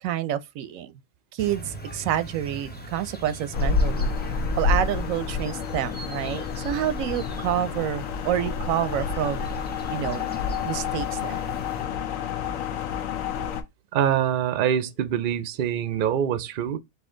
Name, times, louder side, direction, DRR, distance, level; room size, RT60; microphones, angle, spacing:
voice 1, 0.0-0.9 1.3-4.1 4.6-9.4 9.9-10.2 10.6-11.4, right 11 dB, 90° right, 1.0 m, -28 dB
sound 1, 1.4-11.8, right 1 dB, 10° left, 0.7 m, -41 dB
sound 2, 3.5-13.6, left 5 dB, 85° left, 1.1 m, -28 dB
voice 2, 13.9-16.8, right 9 dB, 55° right, 0.6 m, -24 dB
4.2 x 2.8 x 3.7 m
omnidirectional pair, 1.4 m